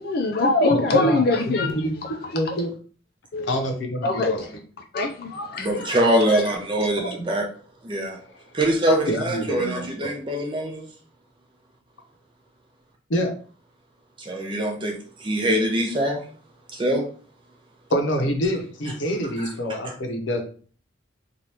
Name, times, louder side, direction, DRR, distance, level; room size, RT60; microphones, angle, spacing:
voice 1, 0.0-2.6 3.3-3.6 4.0-4.5 4.9-6.0 6.3-6.4, left 2 dB, 50° left, 0.4 m, -23 dB
voice 2, 0.7-1.2 1.5-2.0 2.3-2.7 3.5-4.4 7.0-7.3 9.1-9.8 13.1-13.3 17.9-20.5, equal, 75° left, 0.7 m, -26 dB
voice 3, 5.6-7.5 7.8-8.2 8.5-10.8 14.2-16.2 16.7-17.1 19.4-19.5 19.8-19.9, right 1 dB, 25° right, 0.6 m, -23 dB
2.8 x 2.5 x 3.3 m
head